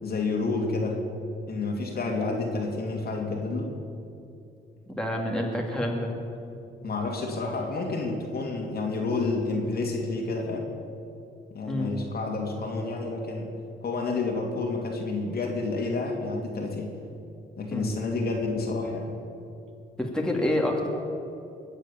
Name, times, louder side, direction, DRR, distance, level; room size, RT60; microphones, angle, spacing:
voice 1, 0.0-1.0 1.5-3.7 6.8-10.7 11.5-13.5 13.8-17.0 17.6-19.2, left 3 dB, 50° left, 1 dB, 2.8 m, -29 dB
voice 2, 4.9-6.1 11.7-11.9 17.7-17.9 20.0-20.9, left 1 dB, 5° left, -1 dB, 2.6 m, -28 dB
21.0 x 8.1 x 7.3 m, 2.6 s
cardioid pair, 90°, 20 cm